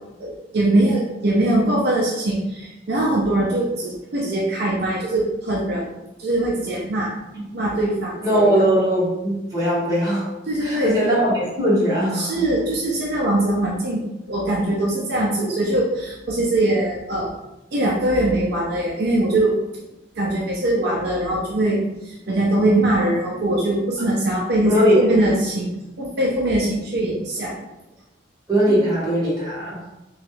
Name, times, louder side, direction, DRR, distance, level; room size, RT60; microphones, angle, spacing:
voice 1, 0.2-5.9 6.2-7.1 7.5-8.7 10.5-11.0 12.1-17.3 17.7-19.6 20.2-25.7 26.0-27.6 28.7-28.8, right 1 dB, 60° right, -3 dB, 0.5 m, -22 dB
voice 2, 8.2-10.2 10.6-12.3 24.6-25.3 28.5-29.8, equal, 20° right, -8 dB, 1.2 m, -20 dB
3.0 x 2.3 x 3.2 m, 0.99 s
head